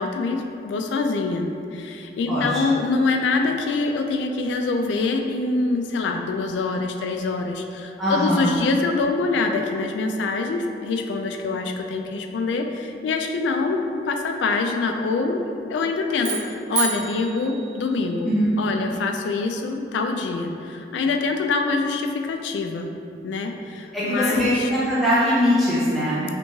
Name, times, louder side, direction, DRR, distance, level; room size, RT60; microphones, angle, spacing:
voice 1, 0.0-22.9 23.2-24.7, left 3 dB, 90° left, 5 dB, 0.3 m, -25 dB
voice 2, 2.3-2.6 8.0-8.5 18.2-18.5 23.9-26.2, equal, ahead, -11 dB, 0.5 m, -21 dB
sound 1, 16.1-18.5, right 5 dB, 65° right, 0.6 m, -30 dB
3.3 x 3.0 x 2.7 m, 2.6 s
head